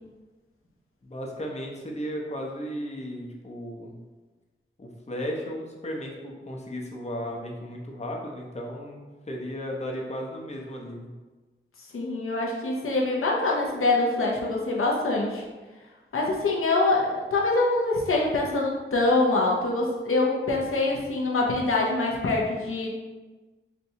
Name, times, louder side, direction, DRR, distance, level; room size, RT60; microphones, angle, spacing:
voice 1, 1.0-4.0 4.8-11.1, equal, 35° left, -1 dB, 0.6 m, -35 dB
voice 2, 11.9-15.4 16.1-22.9, left 2 dB, 90° left, -2 dB, 0.6 m, -24 dB
4.1 x 2.2 x 2.7 m, 1.3 s
wide cardioid pair, 60°, 21 cm